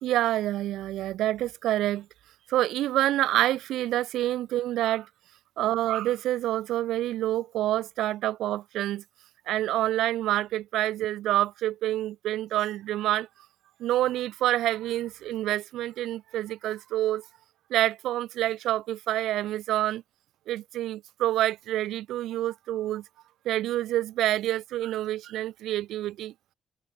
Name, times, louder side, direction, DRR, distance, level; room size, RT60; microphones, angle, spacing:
voice 1, 0.0-2.1 2.5-5.1 5.6-9.0 9.5-13.3 13.8-17.2 17.7-20.0 20.5-23.0 23.5-26.3, right 14 dB, 85° right, 4.0 m, -27 dB
cardioid pair, 90°, 0 cm